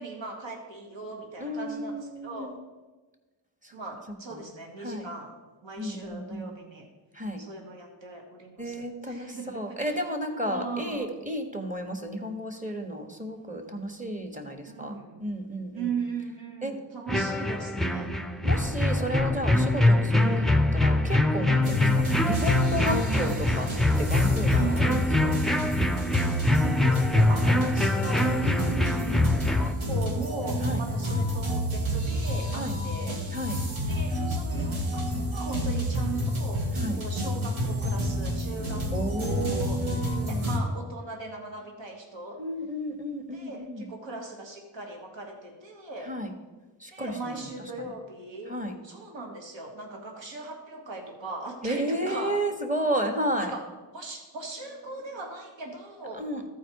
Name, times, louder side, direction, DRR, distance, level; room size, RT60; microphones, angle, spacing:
voice 1, 0.0-2.5 3.7-5.3 5.6-6.9 7.4-10.0 10.4-11.1 14.6-15.2 15.7-18.1 20.1-20.7 21.4-22.1 23.1-23.4 24.6-25.2 26.3-28.4 29.0-33.2 33.9-36.6 36.9-39.8 40.3-42.4 43.3-46.1 46.9-48.6 48.8-52.4 53.4-53.6 53.9-56.2, right 3 dB, 65° right, 1 dB, 1.7 m, -38 dB
voice 2, 1.4-2.6 3.6-3.7 4.1-4.5 4.8-5.1 5.8-6.5 7.1-7.4 8.6-15.9 16.6-16.8 18.4-23.7 24.0-25.4 28.4-29.2 30.6-30.8 32.5-32.8 33.3-33.6 36.7-37.0 38.9-40.5 42.4-43.9 46.0-46.3 46.8-47.9 48.5-48.7 51.6-53.5 56.1-56.5, right 1 dB, 15° right, 4 dB, 1.4 m, -33 dB
sound 1, 17.1-29.7, left 2 dB, ahead, 0.5 m, -24 dB
sound 2, 21.6-40.6, equal, 80° right, 1.8 m, -29 dB
13.5 x 4.7 x 4.7 m, 1.2 s
cardioid pair, 55°, 47 cm